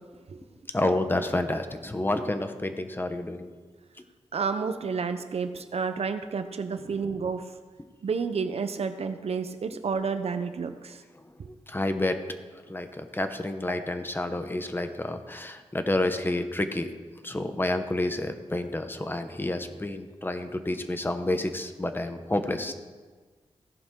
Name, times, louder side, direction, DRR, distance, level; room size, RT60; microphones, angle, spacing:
voice 1, 0.7-3.5 6.8-7.0 11.7-12.2 12.7-16.9 17.2-22.7, left 1 dB, 20° left, 8 dB, 1.0 m, -29 dB
voice 2, 4.3-7.5 8.0-11.0 11.4-11.5 13.7-13.8, right 5 dB, 65° right, 8 dB, 0.8 m, -30 dB
16.0 x 11.0 x 3.8 m, 1.4 s
wide cardioid pair, 100°, 11 cm